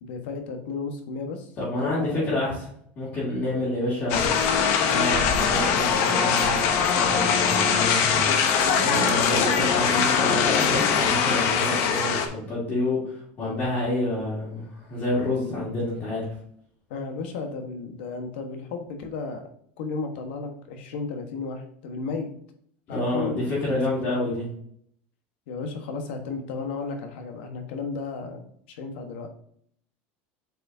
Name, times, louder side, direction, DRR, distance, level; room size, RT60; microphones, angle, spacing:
voice 1, 0.0-1.5 1.8-2.4 3.4-3.9 16.9-19.4 19.8-22.3 22.9-23.8 24.1-24.3 25.5-29.3, left 4 dB, 75° left, 5 dB, 1.3 m, -34 dB
voice 2, 1.6-2.7 3.0-4.3 4.9-8.5 8.7-16.3 22.9-24.5, left 1 dB, 30° left, -10 dB, 2.4 m, -28 dB
sound 1, 4.1-12.3, left 6 dB, 50° left, 0.9 m, -22 dB
7.9 x 4.8 x 2.7 m, 0.66 s
supercardioid pair, 160°, 6 cm